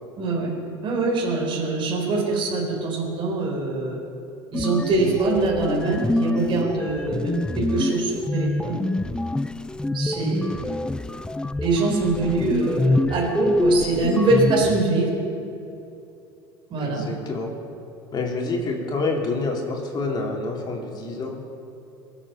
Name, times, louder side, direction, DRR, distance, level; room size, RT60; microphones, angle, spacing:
voice 1, 0.2-0.5 0.8-4.0 4.5-7.3 7.7-8.9 9.9-10.5 11.6-15.1 16.7-17.0, right 3 dB, 45° right, -2 dB, 3.9 m, -23 dB
sound 1, 4.5-14.8, left 2 dB, 5° left, 0.4 m, -26 dB
voice 2, 16.8-17.5 18.1-21.4, left 3 dB, 40° left, 0 dB, 3.2 m, -27 dB
23.0 x 8.0 x 5.7 m, 2.8 s
hypercardioid pair, 75°, 12 cm